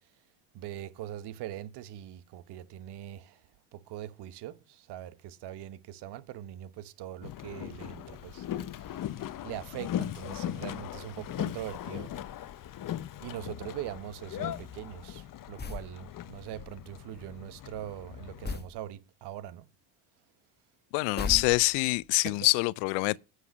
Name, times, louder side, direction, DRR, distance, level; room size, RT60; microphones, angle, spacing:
voice 1, 0.5-3.4 3.7-8.4 9.4-12.2 13.2-19.7 22.2-22.5, right 12 dB, 60° right, 1.1 m, -42 dB
Boat Water vehicle, 7.2-18.6, left 11 dB, 45° left, 1.0 m, -39 dB
sound 1, 15.6-15.9 18.4-18.8 21.2-22.0, left 4 dB, 20° left, 1.8 m, -35 dB
voice 2, 20.9-23.2, left 26 dB, 80° left, 0.6 m, -25 dB
9.6 x 8.2 x 5.2 m
supercardioid pair, 90°, 45 cm